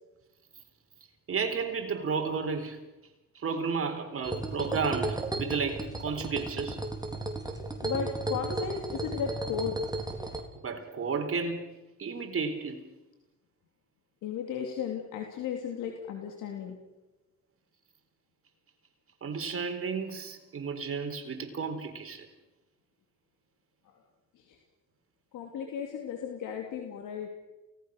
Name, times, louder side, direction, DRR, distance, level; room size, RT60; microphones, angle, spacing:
voice 1, 1.3-2.8 3.3-6.8 10.6-12.8 19.2-22.3, right 5 dB, 45° right, 4.2 m, -33 dB
sound 1, 4.2-10.4, right 2 dB, 15° right, 3.9 m, -34 dB
voice 2, 7.8-9.8 14.2-16.8 24.4-24.6 25.3-27.3, left 7 dB, 85° left, 2.9 m, -35 dB
29.5 x 18.5 x 6.6 m
cardioid pair, 90°, 30 cm